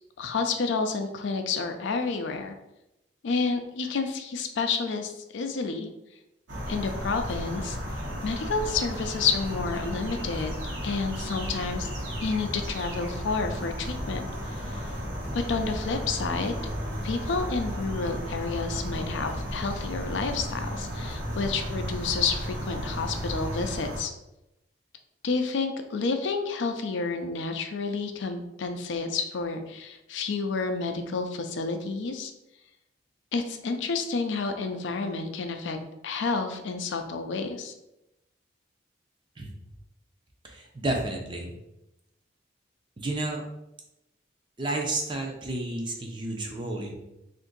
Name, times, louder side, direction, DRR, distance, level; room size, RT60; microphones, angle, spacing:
voice 1, 0.2-2.5 3.2-5.9 6.7-7.8 8.2-10.5 10.8-11.9 12.2-14.9 15.3-16.6 17.0-24.1 25.2-32.3 33.3-35.8 36.0-37.7, left 4 dB, 75° left, 6 dB, 0.4 m, -30 dB
sound 1, 6.5-24.0, equal, 80° right, 1.0 m, -34 dB
voice 2, 40.4-41.5 43.0-43.4 44.6-46.9, right 2 dB, 25° right, 1 dB, 0.5 m, -31 dB
2.6 x 2.5 x 3.8 m, 0.90 s
head